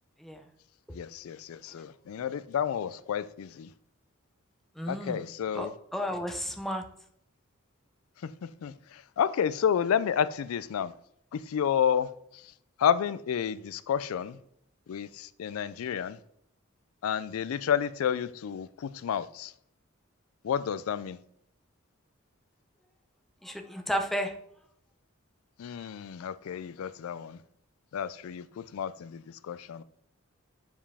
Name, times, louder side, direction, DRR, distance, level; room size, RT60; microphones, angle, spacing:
voice 1, 0.9-3.7 4.9-5.7 8.2-10.9 11.3-12.5 12.8-14.4 14.9-16.2 17.0-19.5 20.4-21.2 25.6-27.4 27.9-29.8, left 8 dB, 85° left, 0.4 m, -30 dB
voice 2, 4.8-5.2 5.5-6.8 23.4-24.3, equal, ahead, 0.6 m, -32 dB
7.2 x 4.8 x 3.4 m
head